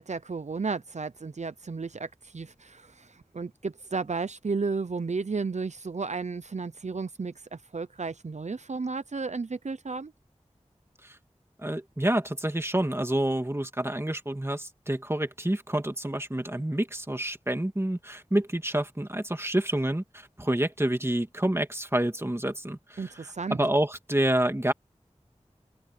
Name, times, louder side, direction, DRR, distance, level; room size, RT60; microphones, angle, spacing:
voice 1, 0.0-10.1 23.0-23.6, right 4 dB, 70° right, 0.6 m, -33 dB
voice 2, 11.6-23.1 23.5-24.7, right 1 dB, 20° right, 2.2 m, -28 dB
wide cardioid pair, 45°, 12 cm